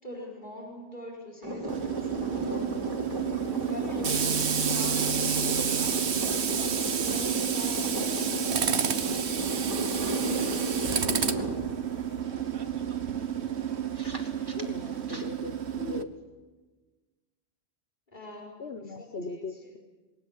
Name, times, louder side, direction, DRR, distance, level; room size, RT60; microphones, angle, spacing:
voice 1, 0.0-3.2 3.5-5.4 7.0-8.9 18.1-19.7, left 1 dB, 45° left, -3 dB, 4.9 m, -43 dB
sound 1, 1.4-15.2, right 1 dB, 20° right, 2.8 m, -34 dB
Tools, 1.7-16.0, right 8 dB, 85° right, 1.3 m, -30 dB
voice 2, 14.5-16.1 18.6-19.8, left 4 dB, 70° left, 8 dB, 1.3 m, -39 dB
26.5 x 21.5 x 7.3 m, 1.3 s
omnidirectional pair, 1.1 m